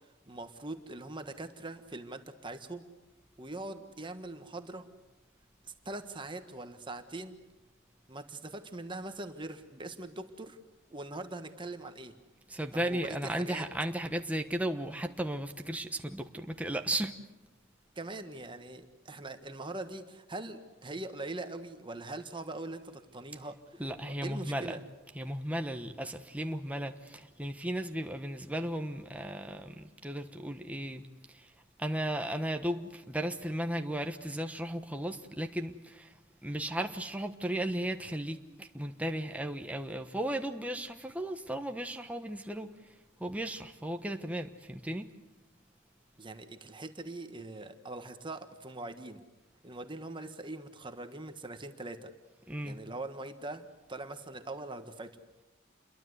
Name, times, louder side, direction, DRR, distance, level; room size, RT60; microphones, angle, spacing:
voice 1, 0.3-2.8 3.4-4.8 5.6-7.4 8.1-10.6 10.9-12.1 12.7-13.7 17.9-24.8 46.2-49.2 49.6-52.1 52.6-55.2, right 2 dB, 25° right, 1.5 m, -42 dB
voice 2, 12.5-17.1 23.8-24.8 25.2-31.0 31.8-36.1 36.4-42.7 43.2-45.1 52.5-52.8, right 1 dB, 5° right, 1.1 m, -35 dB
28.5 x 22.5 x 8.0 m
head